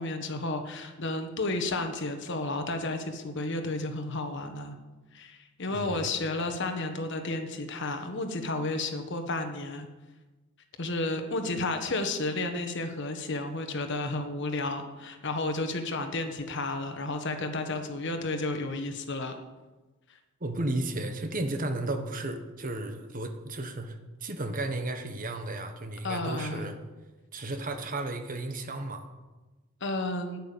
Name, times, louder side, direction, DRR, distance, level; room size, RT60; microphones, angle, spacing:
voice 1, 0.0-4.8 5.1-9.9 10.8-19.4 26.0-26.7 29.8-30.4, left 2 dB, 55° left, 6 dB, 1.3 m, -32 dB
voice 2, 5.7-6.1 20.4-26.7 27.3-29.1, right 2 dB, 40° right, 7 dB, 1.2 m, -34 dB
9.6 x 9.1 x 6.9 m, 1.2 s
head